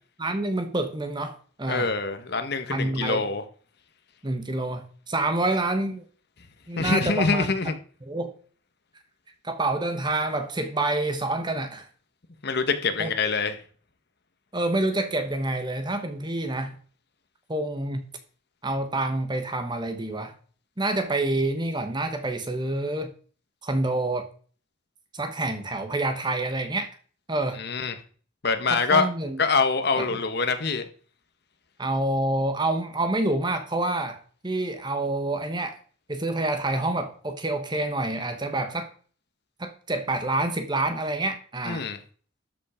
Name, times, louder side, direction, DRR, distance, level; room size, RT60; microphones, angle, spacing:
voice 1, 0.2-1.9 2.7-3.2 4.2-6.0 6.7-7.5 8.0-8.3 9.4-11.9 13.0-13.1 14.5-16.8 17.5-18.0 18.6-20.3 20.8-23.1 23.6-24.3 25.1-26.9 27.3-27.6 28.7-29.4 30.0-30.2 31.8-34.2 34.4-35.8 36.1-38.9 39.6-41.9, right 2 dB, 20° right, 7 dB, 1.2 m, -27 dB
voice 2, 1.7-3.4 6.8-7.8 12.4-13.6 27.6-27.9 28.4-29.1 29.4-30.8 41.6-42.0, left 4 dB, 55° left, 8 dB, 1.2 m, -25 dB
13.0 x 5.6 x 5.0 m, 0.43 s
head